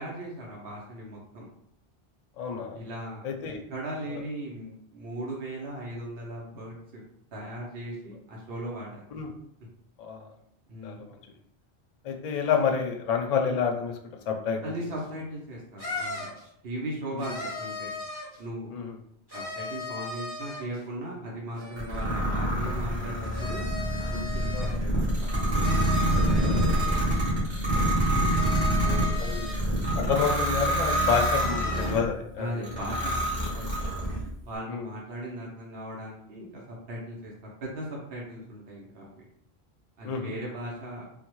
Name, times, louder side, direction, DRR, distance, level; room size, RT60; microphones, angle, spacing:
voice 1, 0.0-1.5 2.8-3.3 3.7-7.0 7.3-9.0 10.7-11.1 14.6-17.9 18.4-18.7 19.3-23.1 23.4-23.7 24.1-25.3 26.9-27.2 32.4-33.9 34.4-37.3 37.6-39.2 40.0-41.1, right 1 dB, 70° right, -4 dB, 0.9 m, -38 dB
voice 2, 2.4-2.8 3.2-3.6 4.1-4.2 9.1-9.3 10.0-10.3 10.8-11.2 12.0-13.9 14.3-14.8 17.1-17.2 18.7-19.0 24.5-24.8 26.4-26.6 28.6-29.5 29.9-32.7 34.7-34.9 40.0-40.3, left 6 dB, 55° left, 3 dB, 0.5 m, -29 dB
sound 1, 15.0-15.1 15.8-16.4 17.2-18.4 19.3-20.8 21.6-22.2 23.2-24.8 25.6-27.1 28.3-29.6 30.8-32.0, left 2 dB, 25° right, 1.0 m, -38 dB
sound 2, 21.8-32.1 32.6-34.3, right 1 dB, 45° right, 1.1 m, -26 dB
3.6 x 2.1 x 3.0 m, 0.73 s
omnidirectional pair, 1.1 m